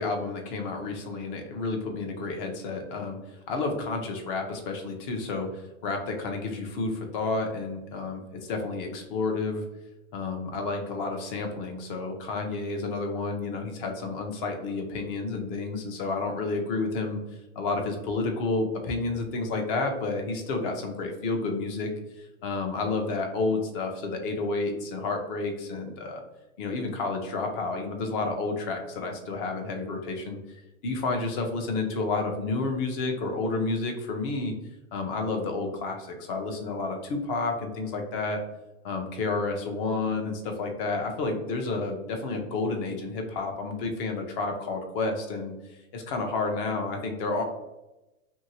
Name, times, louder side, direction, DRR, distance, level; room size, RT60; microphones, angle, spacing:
voice 1, 0.0-3.2 3.5-9.6 10.1-17.2 17.6-21.9 22.4-26.2 26.6-30.4 30.8-34.5 34.9-38.4 38.8-45.5 45.9-47.4, left 3 dB, 45° left, 3 dB, 0.7 m, -30 dB
2.7 x 2.7 x 2.8 m, 0.97 s
hypercardioid pair, 135°, 40 cm